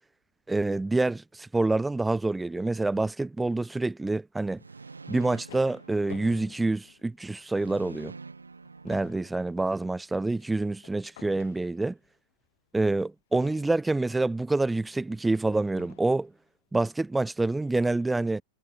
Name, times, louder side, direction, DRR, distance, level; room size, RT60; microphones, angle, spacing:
voice 1, 0.5-4.6 5.1-8.1 8.8-12.0 12.7-16.3 16.7-18.4, right 2 dB, 5° right, 0.4 m, -27 dB
sound 1, 4.6-6.8 7.5-9.7, right 4 dB, 80° right, 3.7 m, -47 dB
sound 2, 4.9-7.6 8.1-8.2 8.5-12.1 13.3-14.1 14.9-15.0 15.7-16.3, left 15 dB, 55° left, 7.9 m, -50 dB
figure-of-eight pair, 90°, 0 cm